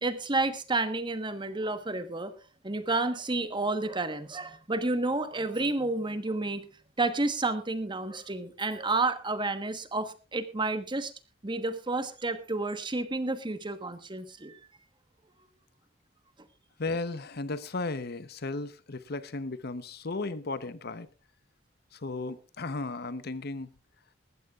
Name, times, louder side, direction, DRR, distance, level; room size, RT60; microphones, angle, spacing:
voice 1, 0.0-2.3 2.6-6.7 7.0-11.1 11.4-14.6, right 2 dB, 25° right, 1.2 m, -30 dB
voice 2, 16.8-21.1 21.9-23.7, left 3 dB, 60° left, 0.9 m, -35 dB
20.0 x 15.0 x 2.4 m
head